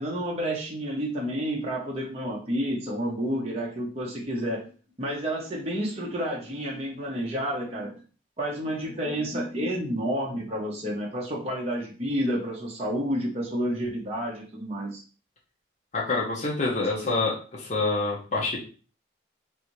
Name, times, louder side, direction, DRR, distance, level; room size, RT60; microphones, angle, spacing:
voice 1, 0.0-4.6 5.0-8.0 8.4-15.0, equal, 30° right, -3 dB, 0.7 m, -30 dB
voice 2, 15.9-18.6, left 3 dB, 35° left, -4 dB, 0.7 m, -27 dB
3.3 x 2.6 x 3.0 m, 0.37 s
head